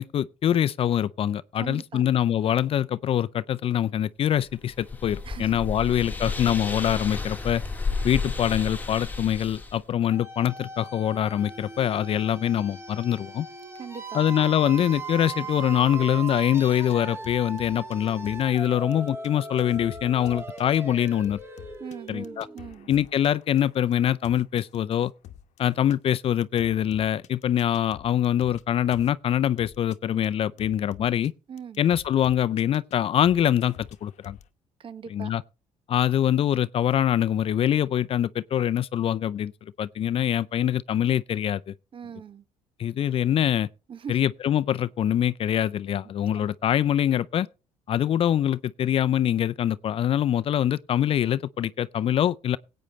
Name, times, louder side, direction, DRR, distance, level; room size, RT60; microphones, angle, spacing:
voice 1, 0.0-7.6 8.0-13.5 14.1-21.4 22.1-22.5 22.9-25.1 25.6-31.3 31.8-34.4 35.1-35.4 35.9-39.5 39.8-41.7 42.8-43.7 44.1-47.5 47.9-52.6, left 10 dB, 50° left, 0.5 m, -24 dB
voice 2, 1.6-2.0 5.2-5.6 13.7-14.2 21.8-22.9 31.5-31.9 34.8-35.3 41.9-42.4 43.9-44.2 46.3-46.5, right 7 dB, 45° right, 1.1 m, -40 dB
sound 1, 4.5-9.8, left 4 dB, 15° left, 1.6 m, -32 dB
sound 2, 10.1-22.9, right 3 dB, 20° right, 2.3 m, -38 dB
sound 3, 16.2-16.6 16.9-17.0 17.2-18.6 18.9-25.6 25.9-26.1 26.4-28.6 28.9-29.1 29.6-30.0 30.2-30.3 30.6-31.3 31.6-33.0 33.2-34.5, left 11 dB, 70° left, 1.0 m, -47 dB
17.0 x 8.8 x 3.2 m
cardioid pair, 95°, 13 cm